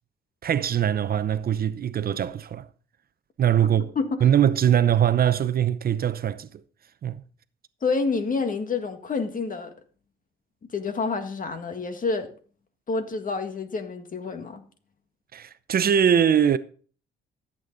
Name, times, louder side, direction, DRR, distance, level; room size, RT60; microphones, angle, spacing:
voice 1, 0.4-2.7 3.4-3.9 4.2-6.5 7.0-7.2 15.3-16.6, right 9 dB, 50° right, 0.7 m, -22 dB
voice 2, 4.0-4.3 7.8-9.7 10.7-12.3 12.9-14.6, left 4 dB, 45° left, 1.8 m, -28 dB
14.0 x 8.5 x 3.9 m
cardioid pair, 90°, 20 cm